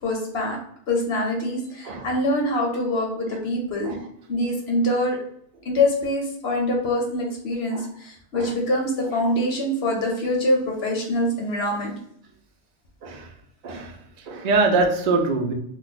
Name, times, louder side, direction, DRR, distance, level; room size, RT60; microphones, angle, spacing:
voice 1, 0.0-0.6 0.9-3.9 4.3-5.2 5.6-11.9, left 1 dB, 55° left, 0 dB, 0.8 m, -24 dB
voice 2, 13.6-14.0 14.3-15.5, right 3 dB, 75° right, 3 dB, 0.4 m, -23 dB
2.4 x 2.2 x 3.9 m, 0.69 s
omnidirectional pair, 1.5 m